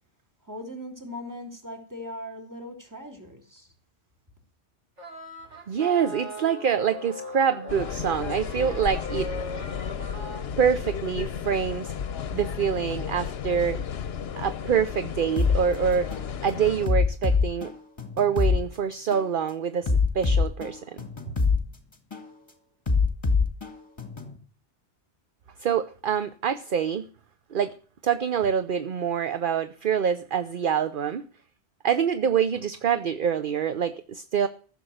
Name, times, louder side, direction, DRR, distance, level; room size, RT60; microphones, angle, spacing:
voice 1, 0.4-3.7, left 1 dB, 15° right, 4 dB, 3.1 m, -39 dB
sound 1, 5.0-10.4, equal, 90° right, 3.5 m, -40 dB
voice 2, 5.7-9.3 10.6-11.9 12.3-13.8 14.4-16.1 16.4-17.7 18.2-21.0 25.6-27.1 27.5-27.7 28.0-31.2 31.8-34.5, right 7 dB, 50° right, 12 dB, 0.9 m, -25 dB
sound 2, 7.7-16.9, left 7 dB, 65° left, 1.0 m, -33 dB
sound 3, 15.4-15.6 16.1-16.3 16.9-18.6 19.1-19.3 19.9-21.6 22.1-22.3 22.9-24.4, left 4 dB, 25° left, 2.0 m, -24 dB
15.5 x 7.2 x 7.9 m, 0.41 s
omnidirectional pair, 1.2 m